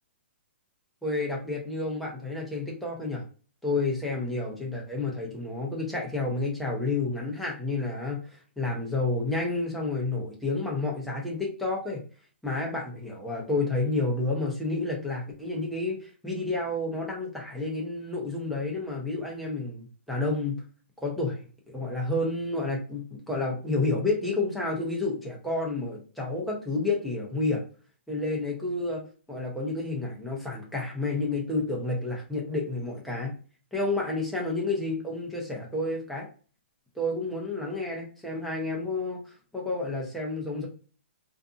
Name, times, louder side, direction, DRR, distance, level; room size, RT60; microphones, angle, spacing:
voice 1, 1.0-3.2 3.6-12.0 12.4-20.6 21.0-21.4 21.7-27.6 28.1-29.0 29.3-33.3 33.7-36.3 37.0-40.7, left 2 dB, ahead, -3 dB, 0.7 m, -30 dB
2.6 x 2.5 x 2.4 m, 0.39 s
hypercardioid pair, 150°, 7 cm